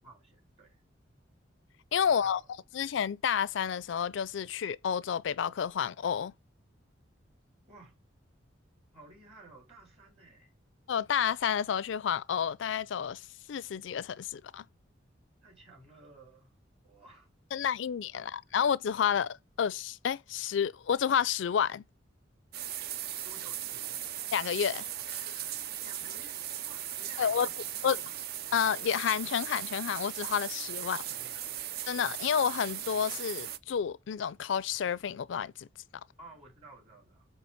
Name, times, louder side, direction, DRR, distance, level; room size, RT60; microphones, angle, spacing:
voice 1, 0.0-0.8 2.0-2.5 7.7-7.9 8.9-10.5 15.4-16.5 16.8-17.3 18.1-18.2 23.2-24.0 25.8-28.1 30.8-31.8 36.2-37.3, right 2 dB, 35° right, 3.9 m, -55 dB
voice 2, 1.9-2.4 2.7-6.3 10.9-14.6 17.5-21.8 24.3-25.4 27.2-27.5 27.8-28.0 28.5-31.0 31.9-35.7, left 8 dB, 70° left, 0.4 m, -30 dB
sound 1, 22.5-33.6, right 11 dB, 55° right, 0.5 m, -38 dB
8.5 x 3.2 x 5.7 m
head